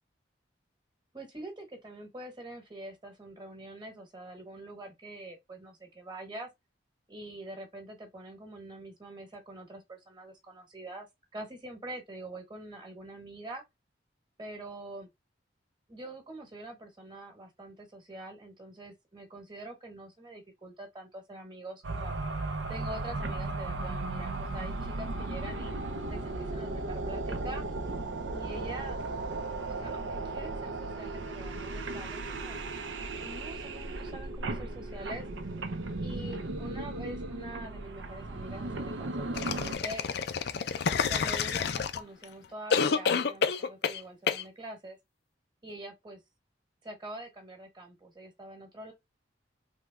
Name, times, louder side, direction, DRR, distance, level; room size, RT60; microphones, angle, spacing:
voice 1, 1.1-6.5 7.1-11.1 11.3-13.6 14.4-15.1 15.9-22.1 22.7-25.7 26.1-27.7 28.3-29.0 29.6-32.6 33.2-35.3 36.0-40.0 41.1-45.0 45.6-46.2 46.8-48.9, right 1 dB, 25° right, 1.2 m, -45 dB
sound 1, 21.8-39.8, right 2 dB, 90° right, 0.6 m, -36 dB
sound 2, 39.4-42.2 42.7-44.0 44.3-44.4, left 6 dB, 60° left, 0.4 m, -28 dB
3.6 x 3.0 x 2.2 m
head